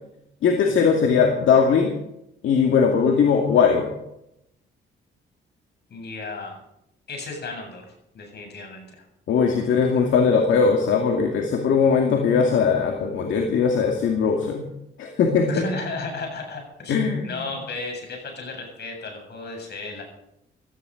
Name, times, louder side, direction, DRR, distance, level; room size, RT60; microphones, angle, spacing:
voice 1, 0.4-1.9 2.4-4.0 9.3-14.7 15.0-15.5 16.9-17.4, left 6 dB, 75° left, 2 dB, 2.4 m, -20 dB
voice 2, 5.9-6.6 7.1-7.8 8.1-9.0 15.5-17.0 17.2-20.0, left 3 dB, 55° left, 3 dB, 7.9 m, -34 dB
17.5 x 14.0 x 5.2 m, 0.80 s
cardioid pair, 90°, 20 cm